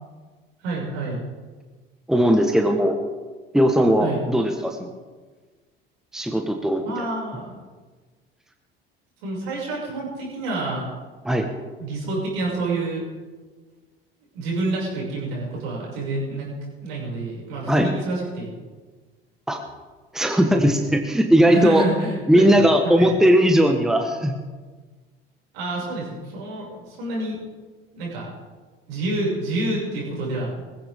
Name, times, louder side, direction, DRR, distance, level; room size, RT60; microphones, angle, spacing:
voice 1, 0.6-1.2 4.0-4.2 6.8-7.5 9.2-10.8 11.8-13.0 14.3-16.5 16.8-18.5 21.5-23.1 25.5-27.4 27.9-28.3 28.9-30.6, right 2 dB, 70° right, -3 dB, 6.4 m, -28 dB
voice 2, 2.1-3.0 3.5-4.9 6.1-6.9 11.2-11.5 17.7-17.9 19.5-19.6 20.1-21.8 22.3-24.3, equal, ahead, 5 dB, 1.4 m, -18 dB
19.5 x 15.5 x 3.7 m, 1.4 s
hypercardioid pair, 70°, 30 cm